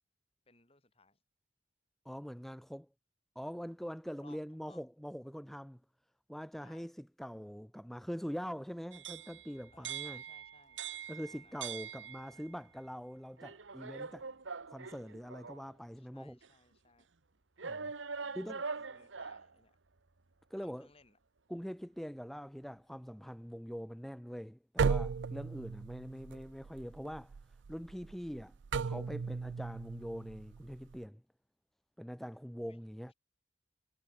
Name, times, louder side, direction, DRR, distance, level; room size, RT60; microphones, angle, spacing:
voice 1, 0.5-1.2 4.2-4.8 6.6-6.9 9.7-10.8 11.2-11.6 16.0-17.1 18.2-19.8 20.6-21.2 32.7-32.8, left 3 dB, 30° left, 5.7 m, -64 dB
voice 2, 2.0-2.9 3.4-5.8 6.3-10.2 11.1-14.3 14.7-16.4 17.6-17.9 18.3-18.6 20.5-20.9 21.5-27.4 27.7-28.6 28.8-31.2 32.0-33.1, equal, ahead, 0.7 m, -43 dB
sound 1, 8.9-12.5 13.4-15.7 16.4-16.5 17.6-19.5, right 6 dB, 90° right, 1.3 m, -43 dB
sound 2, 24.8-31.0, right 5 dB, 75° right, 0.4 m, -36 dB
head